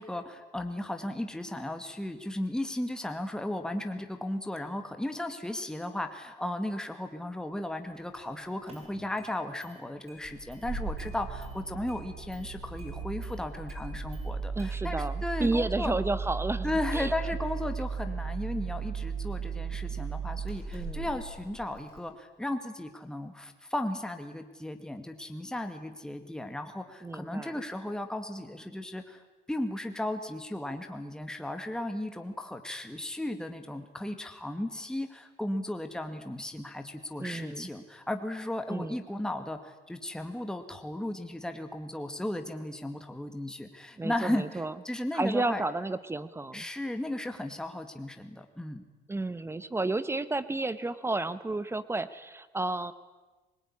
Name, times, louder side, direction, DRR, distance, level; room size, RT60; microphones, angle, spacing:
voice 1, 0.0-16.0 16.6-45.6 46.5-48.8, left 1 dB, 5° left, 6 dB, 2.0 m, -35 dB
Engine starting, 8.1-8.2 8.7-9.3 9.6-9.7 10.1-22.0, right 5 dB, 35° right, 6.9 m, -36 dB
voice 2, 14.6-16.7 16.9-17.1 20.7-21.0 27.0-27.5 37.2-37.7 38.7-39.0 44.0-44.7 45.1-46.7 49.1-52.9, right 2 dB, 15° right, 15 dB, 1.1 m, -32 dB
23.5 x 21.5 x 9.9 m, 1.2 s
cardioid pair, 110°, 17 cm